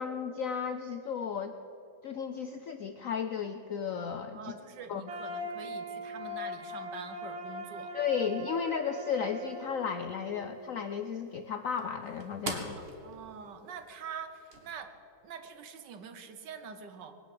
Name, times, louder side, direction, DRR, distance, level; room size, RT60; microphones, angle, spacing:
voice 1, 0.0-1.5 2.0-4.5 4.9-5.1 7.9-12.8, left 6 dB, 70° left, 9 dB, 0.8 m, -34 dB
voice 2, 4.3-8.0 12.8-14.9 15.2-17.2, right 6 dB, 65° right, 9 dB, 1.6 m, -45 dB
sound 1, 5.1-11.0, left 1 dB, 85° right, 2.2 m, -41 dB
sound 2, 9.4-14.7, right 2 dB, 35° right, 1.7 m, -46 dB
20.5 x 9.2 x 7.7 m, 3.0 s
omnidirectional pair, 2.1 m